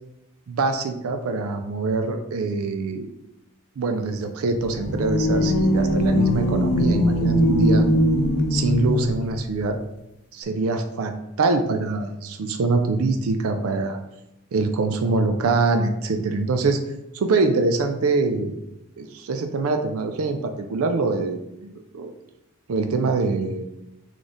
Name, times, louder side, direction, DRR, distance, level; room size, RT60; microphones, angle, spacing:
voice 1, 0.5-3.1 3.8-7.9 8.5-9.8 10.3-14.0 14.5-16.8 17.1-18.6 19.0-22.1 22.7-23.7, right 3 dB, 80° right, 6 dB, 0.4 m, -24 dB
sound 1, 4.6-9.4, equal, 90° left, 0.6 m, -21 dB
3.9 x 3.2 x 3.8 m, 0.90 s
head